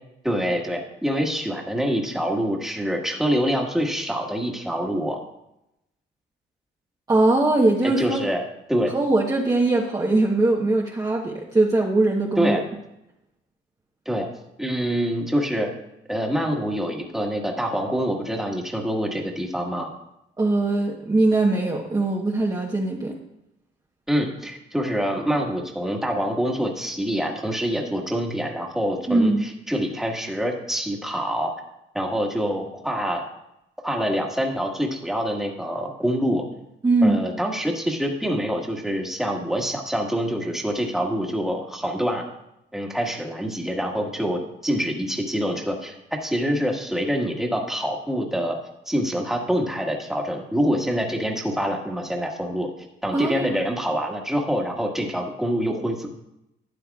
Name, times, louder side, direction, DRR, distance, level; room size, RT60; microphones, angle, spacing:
voice 1, 0.2-5.2 7.8-8.4 8.7-8.9 12.4-12.6 14.1-14.3 14.6-15.7 16.1-19.9 24.1-31.6 31.9-33.2 33.8-36.4 37.0-42.2 42.7-48.6 48.9-52.7 53.0-56.1, equal, ahead, 0 dB, 1.7 m, -25 dB
voice 2, 7.1-8.2 8.9-12.6 20.4-23.1 29.1-29.4 36.8-37.2 53.1-53.5, right 2 dB, 20° right, -2 dB, 1.1 m, -21 dB
12.5 x 9.2 x 2.4 m, 0.85 s
cardioid pair, 90°, 20 cm